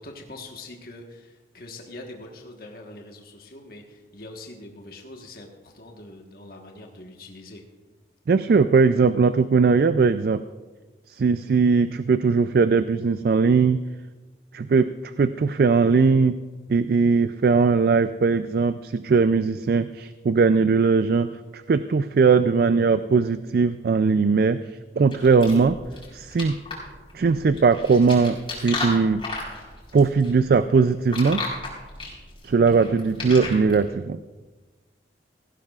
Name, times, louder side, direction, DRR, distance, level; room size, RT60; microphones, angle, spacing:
voice 1, 0.0-7.6, left 2 dB, 55° left, 1 dB, 1.3 m, -43 dB
voice 2, 8.3-10.4 11.1-13.8 14.5-14.9 15.2-16.4 16.7-21.3 21.7-24.6 25.0-25.8 26.1-26.6 27.1-29.2 29.9-31.4 32.4-34.2, right 4 dB, 55° right, 12 dB, 0.3 m, -19 dB
sound 1, 25.1-33.9, left 3 dB, 30° left, 4.1 m, -34 dB
17.5 x 15.5 x 2.4 m, 1.3 s
head